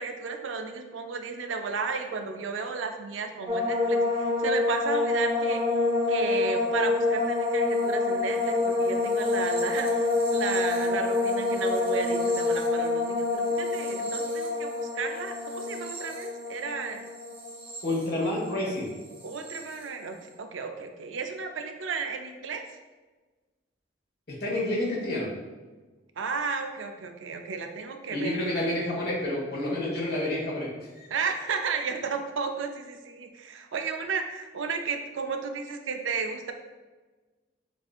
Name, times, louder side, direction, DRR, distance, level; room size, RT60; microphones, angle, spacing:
voice 1, 0.0-5.6 6.1-17.1 19.2-22.6 26.2-28.3 31.1-36.5, right 5 dB, 85° right, 5 dB, 0.5 m, -33 dB
sound 1, 3.5-18.7 18.9-19.6, left 3 dB, 30° right, 0.6 m, -27 dB
voice 2, 17.8-18.9 24.4-25.3 28.1-30.7 31.0-31.1, left 1 dB, 55° left, -5 dB, 1.3 m, -29 dB
6.8 x 2.7 x 2.4 m, 1.3 s
head